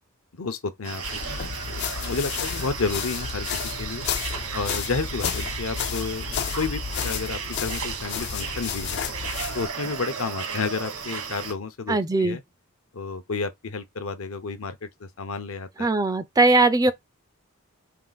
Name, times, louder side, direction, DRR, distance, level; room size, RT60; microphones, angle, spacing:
voice 1, 0.4-1.0 1.3-1.4 1.7-4.0 4.5-9.0 9.5-12.4 12.9-15.9, left 4 dB, 70° left, 0.8 m, -31 dB
sound 1, 0.8-11.5, right 6 dB, 85° right, 1.5 m, -35 dB
sound 2, 1.0-9.7, left 7 dB, 50° left, 0.4 m, -32 dB
voice 2, 11.9-12.4 15.8-16.9, right 2 dB, 15° right, 0.4 m, -20 dB
4.6 x 2.5 x 3.9 m
head